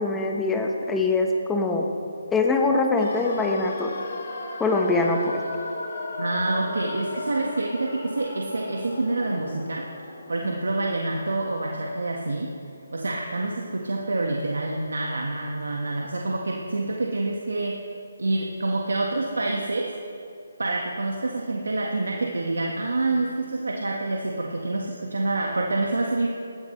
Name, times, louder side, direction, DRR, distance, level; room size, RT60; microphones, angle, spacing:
voice 1, 0.0-1.9 2.3-3.9 4.6-5.4, left 3 dB, 10° left, 1 dB, 1.3 m, -23 dB
sound 1, 3.0-12.9 13.2-13.3, left 2 dB, 50° left, 2.4 m, -37 dB
voice 2, 6.2-9.9 10.3-12.5 12.9-17.8 18.2-19.9 20.6-26.3, right 2 dB, 70° right, 0 dB, 1.7 m, -27 dB
21.0 x 15.5 x 3.3 m, 2.5 s
figure-of-eight pair, 150°, 0 cm